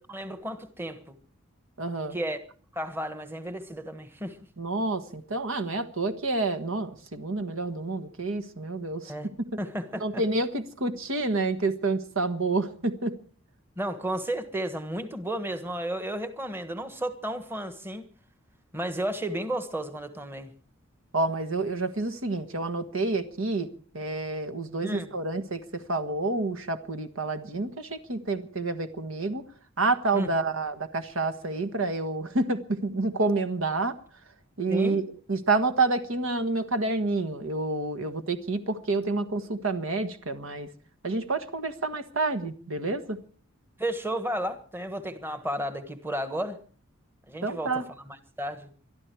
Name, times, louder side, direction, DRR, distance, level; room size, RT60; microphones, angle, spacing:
voice 1, 0.1-1.2 2.1-2.4 2.7-4.4 9.1-9.3 9.6-10.2 13.8-18.1 18.7-20.5 24.8-25.1 30.1-30.3 34.7-35.0 43.8-46.6 47.3-48.7, right 1 dB, 10° right, 1.4 m, -33 dB
voice 2, 1.8-2.2 4.6-9.1 10.0-13.2 21.1-23.7 23.9-29.4 29.8-33.9 34.6-35.0 35.3-40.7 41.0-43.2 47.4-47.8, right 3 dB, 70° right, 1.5 m, -28 dB
23.0 x 13.0 x 4.6 m
head